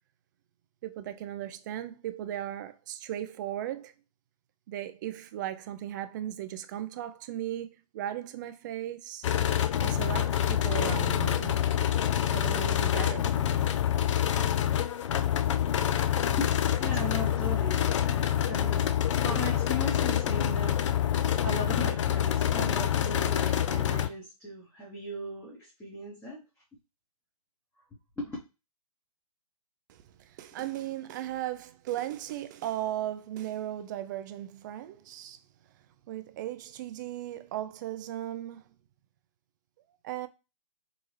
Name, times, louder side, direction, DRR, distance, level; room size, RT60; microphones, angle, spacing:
voice 1, 0.8-3.9 4.7-9.3 9.8-11.5 12.3-13.7 29.9-35.4 36.1-38.7 40.0-40.3, right 12 dB, 30° right, 0.4 m, -37 dB
sound 1, 9.2-24.1, left 10 dB, 50° left, 0.4 m, -27 dB
voice 2, 16.4-26.4 28.2-28.4 30.6-31.1, left 1 dB, 10° left, 1.0 m, -38 dB
4.6 x 2.9 x 3.1 m
hypercardioid pair, 140°, 20 cm